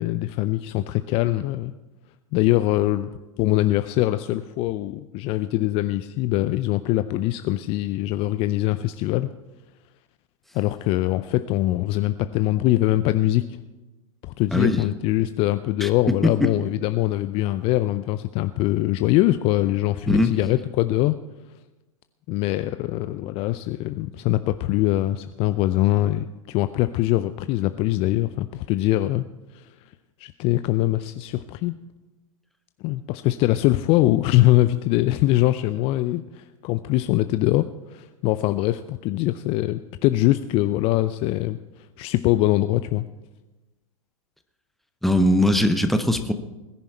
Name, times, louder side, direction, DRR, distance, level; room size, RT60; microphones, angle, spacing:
voice 1, 0.0-1.7 2.3-3.1 3.4-9.3 10.5-13.4 14.2-21.2 22.3-29.2 29.5-29.7 30.2-31.8 32.8-43.0, left 16 dB, 35° left, 12 dB, 0.5 m, -23 dB
voice 2, 14.5-14.8 15.8-15.9 16.2-16.5 20.1-20.4 45.0-46.3, left 1 dB, ahead, 8 dB, 1.0 m, -20 dB
21.0 x 10.5 x 4.2 m, 1.1 s
figure-of-eight pair, 100°, 17 cm